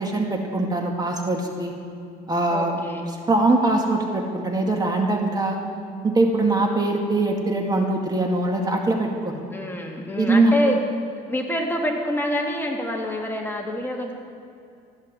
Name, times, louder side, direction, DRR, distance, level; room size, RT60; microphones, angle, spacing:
voice 1, 0.0-1.7 2.3-2.8 3.3-5.6 6.0-9.4 10.2-10.5, right 2 dB, 25° right, 1 dB, 2.0 m, -22 dB
voice 2, 2.5-3.1 9.5-10.8 11.3-14.1, left 1 dB, 10° left, 0 dB, 2.2 m, -26 dB
15.0 x 10.5 x 7.7 m, 2.5 s
cardioid pair, 110°, 17 cm